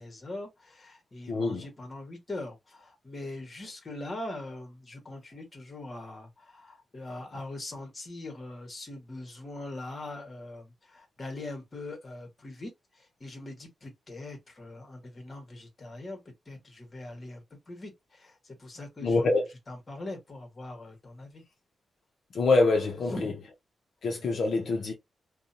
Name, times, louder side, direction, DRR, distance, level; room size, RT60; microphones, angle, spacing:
voice 1, 0.0-16.2 16.5-19.3 19.7-21.4 23.1-23.3, left 2 dB, 25° left, 1.1 m, -41 dB
voice 2, 1.3-1.7 19.0-19.4 22.3-23.3 24.0-24.9, left 3 dB, 55° left, 0.6 m, -25 dB
2.7 x 2.1 x 2.6 m
wide cardioid pair, 170°, 0 cm